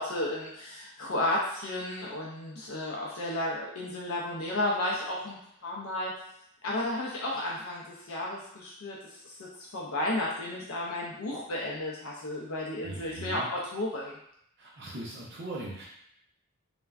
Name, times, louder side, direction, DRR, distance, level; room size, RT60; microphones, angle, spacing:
voice 1, 0.0-5.4 5.6-6.1 6.6-14.2, left 1 dB, 70° left, -4 dB, 0.4 m, -33 dB
voice 2, 12.8-13.5 14.6-15.8, right 2 dB, 50° right, -7 dB, 0.5 m, -39 dB
3.3 x 2.1 x 2.3 m, 0.74 s
head